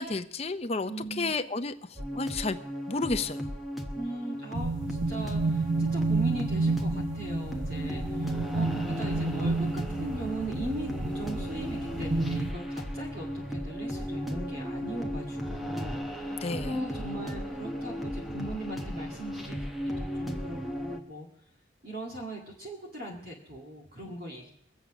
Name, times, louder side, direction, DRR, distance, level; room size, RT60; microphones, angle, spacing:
voice 1, 0.0-1.7 2.1-2.6 2.9-3.5 16.4-16.8, left 3 dB, 30° left, 9 dB, 0.6 m, -31 dB
voice 2, 0.9-1.3 3.9-21.3 21.8-24.5, right 1 dB, 50° right, -1 dB, 1.9 m, -39 dB
sound 1, 2.0-21.0, equal, ahead, 1.0 m, -36 dB
sound 2, 4.5-12.5, right 3 dB, 80° right, 0.8 m, -30 dB
22.5 x 8.0 x 6.0 m, 0.70 s
head